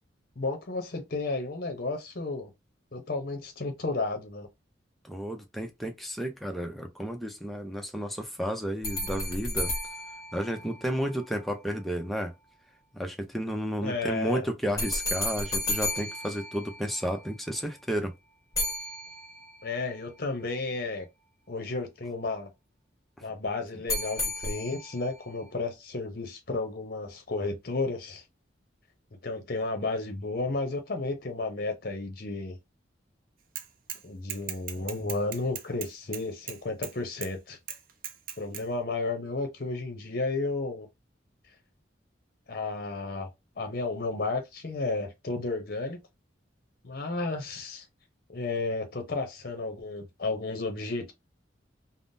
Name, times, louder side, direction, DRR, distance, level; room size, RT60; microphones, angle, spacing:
voice 1, 0.4-2.5 2.9-4.5 13.8-14.5 19.6-21.1 21.5-22.5 23.2-28.2 29.2-32.6 34.0-37.6 38.4-40.9 42.5-43.3 43.6-46.0 46.8-47.8 48.3-51.1, left 3 dB, 50° left, 0.7 m, -32 dB
voice 2, 5.0-9.7 10.3-12.3 12.9-18.1, equal, ahead, 0.5 m, -32 dB
sound 1, 8.8-11.2 14.8-17.3 18.6-19.7 23.9-25.1, left 1 dB, 20° left, 1.3 m, -33 dB
Bicycle / Mechanisms, 33.5-34.0 34.3-36.9 37.2-37.3 37.7-38.6, right 10 dB, 50° right, 0.5 m, -38 dB
3.5 x 2.0 x 2.6 m
head